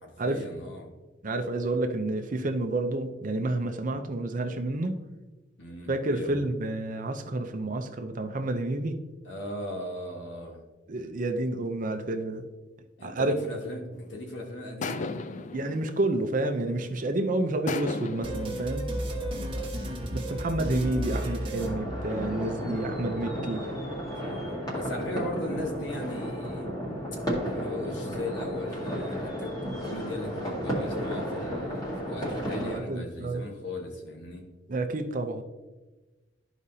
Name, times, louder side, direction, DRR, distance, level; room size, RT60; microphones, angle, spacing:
voice 1, 0.0-0.9 5.6-6.4 9.2-10.6 13.0-15.1 18.9-19.7 24.2-24.5 24.7-26.7 27.4-34.4, left 1 dB, 75° left, 1 dB, 1.6 m, -38 dB
voice 2, 1.2-5.0 5.9-9.0 10.9-12.4 13.0-13.3 15.5-18.9 20.1-23.6 32.5-33.4 34.7-35.4, right 2 dB, 45° right, 6 dB, 0.6 m, -29 dB
sound 1, 13.9-14.2 14.8-17.0 17.7-19.5, left 4 dB, 40° left, 0.4 m, -37 dB
sound 2, 18.2-22.5, right 1 dB, 30° right, 1.3 m, -33 dB
sound 3, 21.6-32.8, equal, 20° left, 2.0 m, -33 dB
12.5 x 4.9 x 2.8 m, 1.2 s
head